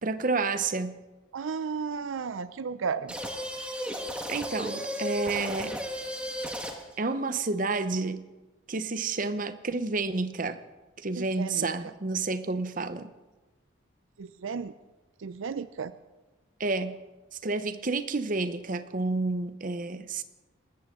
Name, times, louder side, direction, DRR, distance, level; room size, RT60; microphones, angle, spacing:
voice 1, 0.0-1.0 4.3-5.7 7.0-8.3 8.7-10.6 11.0-13.1 16.6-17.0 17.3-20.2, right 3 dB, 40° right, 11 dB, 0.8 m, -30 dB
voice 2, 1.3-3.1 11.2-11.7 14.2-14.7 15.2-15.9, right 5 dB, 75° right, 14 dB, 0.5 m, -34 dB
sound 1, 3.1-7.0, equal, 5° right, 1.5 m, -34 dB
27.5 x 14.0 x 3.7 m, 1.2 s
head